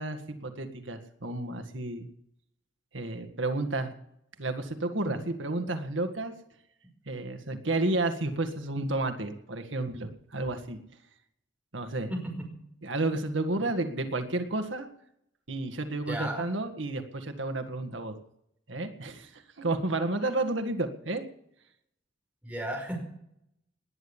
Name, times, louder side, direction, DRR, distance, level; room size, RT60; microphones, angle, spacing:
voice 1, 0.0-2.1 2.9-3.9 4.4-6.3 7.1-10.8 11.7-12.1 12.8-14.9 15.5-18.2 18.7-21.2, right 2 dB, 80° right, 7 dB, 1.9 m, -31 dB
voice 2, 12.1-12.5 13.6-13.7 16.1-16.5 22.4-23.0, right 1 dB, 10° right, 0 dB, 5.5 m, -34 dB
20.0 x 10.0 x 7.2 m, 0.75 s
head